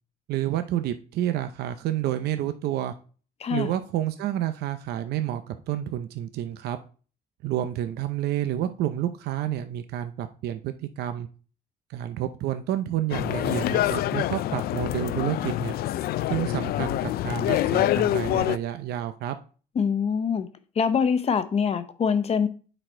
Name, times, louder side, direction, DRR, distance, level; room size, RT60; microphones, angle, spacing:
voice 1, 0.3-2.9 3.5-6.8 7.4-11.3 11.9-15.8 16.3-19.4, right 12 dB, 75° right, 0.6 m, -29 dB
voice 2, 3.4-3.7 19.8-20.5 20.8-22.5, left 6 dB, 35° left, 0.8 m, -24 dB
sound 1, 13.1-18.6, left 13 dB, 65° left, 0.4 m, -26 dB
9.0 x 4.3 x 4.4 m
cardioid pair, 110°, 17 cm